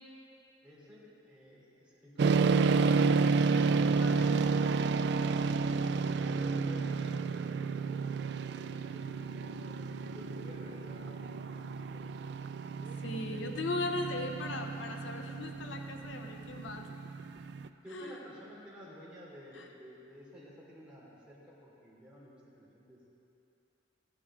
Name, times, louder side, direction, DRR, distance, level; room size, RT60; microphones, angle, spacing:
voice 1, 0.6-3.3 5.7-12.4 17.8-23.1, equal, 5° right, -8 dB, 3.1 m, -53 dB
sound 1, 2.2-17.7, right 4 dB, 60° right, 0.3 m, -31 dB
voice 2, 3.8-4.4 13.0-16.9 17.9-18.1 19.6-19.7, left 2 dB, 80° left, 4 dB, 0.8 m, -38 dB
15.5 x 11.5 x 3.7 m, 2.8 s
head